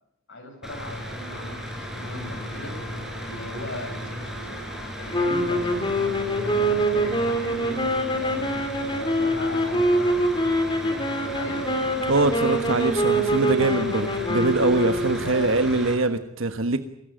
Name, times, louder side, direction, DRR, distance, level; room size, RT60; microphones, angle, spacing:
voice 1, 0.3-2.8 3.2-4.5 4.9-8.4 9.0-11.7 15.2-15.7, left 1 dB, 65° left, 5 dB, 7.6 m, -38 dB
Mechanical fan, 0.6-15.9, equal, ahead, 5.9 m, -35 dB
sound 1, 5.1-15.5, right 1 dB, 25° left, 3.9 m, -25 dB
voice 2, 12.1-16.8, right 3 dB, 70° right, 8 dB, 1.4 m, -23 dB
24.0 x 19.0 x 9.0 m, 0.81 s
head